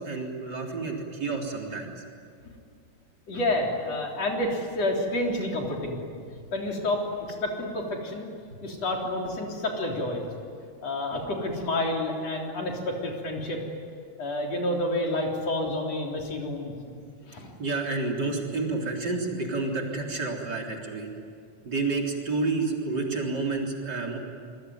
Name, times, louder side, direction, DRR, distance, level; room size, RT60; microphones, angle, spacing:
voice 1, 0.0-2.0 6.4-6.5 17.6-21.1 21.6-24.2, right 3 dB, 35° right, 0 dB, 4.1 m, -30 dB
voice 2, 3.3-6.0 6.5-8.3 8.6-10.3 10.8-13.6 14.2-16.7 17.3-17.5, left 1 dB, 60° left, 0 dB, 4.7 m, -29 dB
27.0 x 23.0 x 9.6 m, 2.3 s
omnidirectional pair, 3.4 m